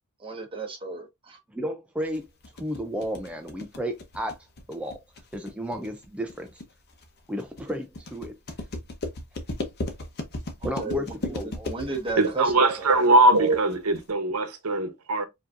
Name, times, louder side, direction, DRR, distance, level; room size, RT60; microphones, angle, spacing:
voice 1, 0.2-1.4 10.6-11.0 11.6-12.5 12.8-13.0, right 3 dB, 25° right, 1.2 m, -33 dB
voice 2, 1.5-2.3 2.6-4.4 4.7-5.0 5.3-6.6 7.3-8.3 10.6-11.9, equal, 5° right, 0.5 m, -33 dB
sound 1, 2.1-14.1, left 2 dB, 50° left, 0.9 m, -36 dB
voice 3, 12.2-15.2, right 2 dB, 85° right, 0.9 m, -21 dB
4.8 x 2.8 x 2.5 m
head